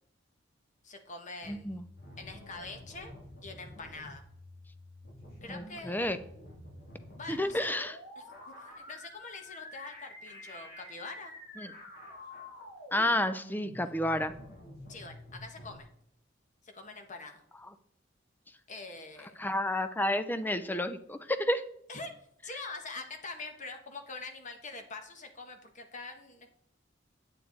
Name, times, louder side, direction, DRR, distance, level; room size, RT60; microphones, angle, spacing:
voice 1, 0.8-1.8 2.2-3.1 3.4-4.2 5.4-6.0 7.1-7.8 8.5-11.3 14.9-15.9 16.6-17.4 18.7-19.4 21.9-22.1 22.4-26.5, left 3 dB, 40° left, 5 dB, 1.4 m, -44 dB
sound 1, 1.4-15.8, left 1 dB, 55° left, 3.0 m, -49 dB
voice 2, 1.5-1.9 5.5-6.2 7.3-8.0 11.6-11.7 12.9-14.3 17.6-17.7 19.4-21.6, left 1 dB, 10° left, 11 dB, 0.6 m, -31 dB
9.0 x 8.7 x 4.1 m, 0.70 s
head